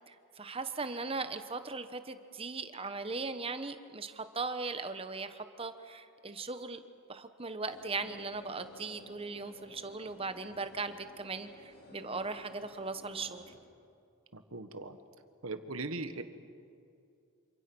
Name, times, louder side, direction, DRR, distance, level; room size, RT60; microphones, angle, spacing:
voice 1, 0.1-6.8 7.1-13.4, right 3 dB, 25° right, 10 dB, 1.1 m, -38 dB
sound 1, 7.7-13.6, left 1 dB, 50° left, 4.4 m, -54 dB
voice 2, 14.3-15.0 15.4-16.2, right 3 dB, 80° right, 9 dB, 1.5 m, -39 dB
27.5 x 26.5 x 6.3 m, 2.5 s
head